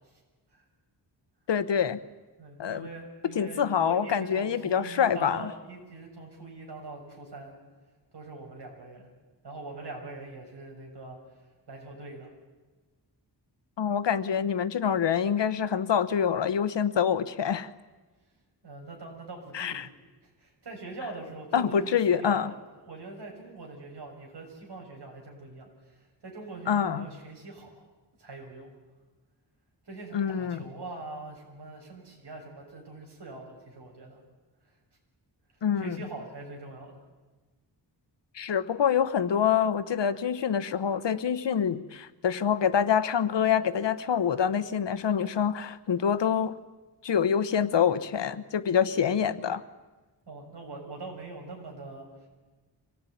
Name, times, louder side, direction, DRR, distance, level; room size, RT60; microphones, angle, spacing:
voice 1, 1.5-2.0 2.6-2.9 3.3-5.5 13.8-17.7 19.5-19.9 21.5-22.5 26.7-27.1 30.1-30.7 35.6-36.0 38.3-46.6 47.0-49.6, left 8 dB, 80° left, 13 dB, 1.1 m, -26 dB
voice 2, 2.4-7.5 8.1-9.1 9.4-11.2 11.7-12.3 18.6-19.9 20.2-22.6 22.8-27.9 28.2-28.7 29.8-34.2 35.8-37.0 50.2-52.1, right 3 dB, 70° right, 0 dB, 6.7 m, -43 dB
25.0 x 18.5 x 9.3 m, 1.3 s
wide cardioid pair, 160°, 42 cm